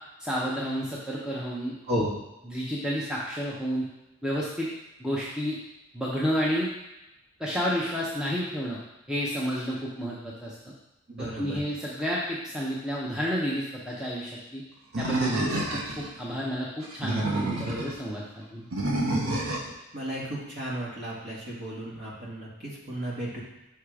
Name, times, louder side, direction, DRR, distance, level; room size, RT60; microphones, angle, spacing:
voice 1, 0.2-2.0 2.5-3.9 4.2-4.7 5.0-5.6 5.9-6.7 7.4-8.8 9.1-10.5 11.2-14.6 15.0-18.7, equal, 5° right, -6 dB, 0.7 m, -31 dB
voice 2, 11.1-11.6 19.9-23.4, equal, 50° right, -6 dB, 1.9 m, -33 dB
Animal, 14.9-16.1 16.8-17.9 18.7-19.7, right 2 dB, 70° right, 0.9 m, -28 dB
5.7 x 3.6 x 4.8 m, 0.94 s
head